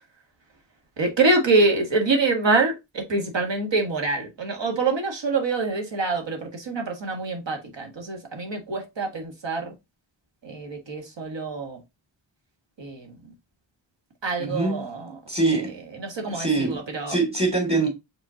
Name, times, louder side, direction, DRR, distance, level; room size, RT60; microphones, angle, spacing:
voice 1, 1.0-9.7 10.4-11.8 12.8-13.2 14.2-15.2 16.0-17.2, right 3 dB, 65° right, 1.4 m, -25 dB
voice 2, 14.4-14.9 15.3-15.8 16.3-17.9, right 3 dB, 15° right, 2.3 m, -24 dB
5.0 x 3.7 x 2.7 m
wide cardioid pair, 70°, 47 cm